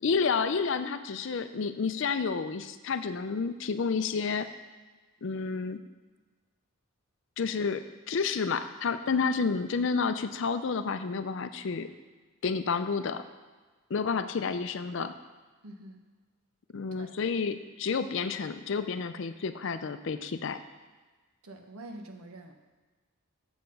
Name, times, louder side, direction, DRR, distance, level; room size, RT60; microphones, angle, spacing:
voice 1, 0.0-4.5 5.2-5.8 7.4-11.9 12.4-13.2 13.9-15.1 16.7-20.6, left 5 dB, 55° left, 10 dB, 0.4 m, -30 dB
voice 2, 15.6-16.0 16.9-17.1 21.4-22.5, right 1 dB, 85° right, 4 dB, 1.0 m, -46 dB
7.0 x 6.7 x 5.3 m, 1.3 s
head